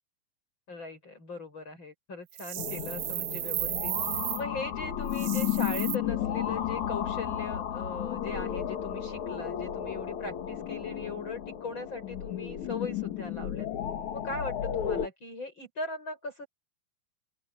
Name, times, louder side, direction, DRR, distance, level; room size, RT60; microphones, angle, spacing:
voice 1, 0.7-3.9 4.4-13.7 14.1-16.5, left 3 dB, 35° left, 7.1 m, -39 dB
sound 1, 2.3-4.4 5.1-6.0, right 16 dB, 80° right, 2.5 m, -34 dB
sound 2, 2.6-15.1, left 10 dB, 60° left, 3.0 m, -33 dB
open air
omnidirectional pair, 4.0 m